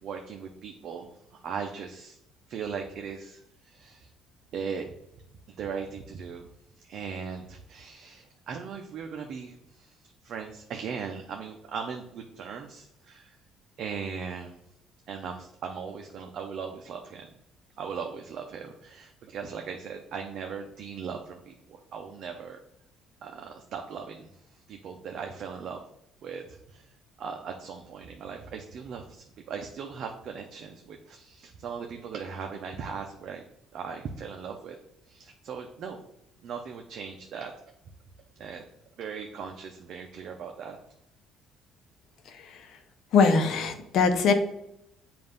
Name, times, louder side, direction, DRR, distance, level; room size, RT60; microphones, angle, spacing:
voice 1, 0.0-2.2 2.5-4.1 4.5-4.9 5.5-6.5 6.8-10.0 10.2-13.4 13.8-14.6 15.1-17.3 17.8-22.6 23.2-24.3 24.7-25.8 26.2-26.9 27.2-33.4 33.7-34.8 35.1-36.0 36.4-37.5 38.4-38.7 39.0-40.8, right 6 dB, 55° right, 3 dB, 0.7 m, -38 dB
voice 2, 43.1-44.3, left 5 dB, 65° left, 7 dB, 0.8 m, -22 dB
7.6 x 2.6 x 5.3 m, 0.81 s
cardioid pair, 115°, 0 cm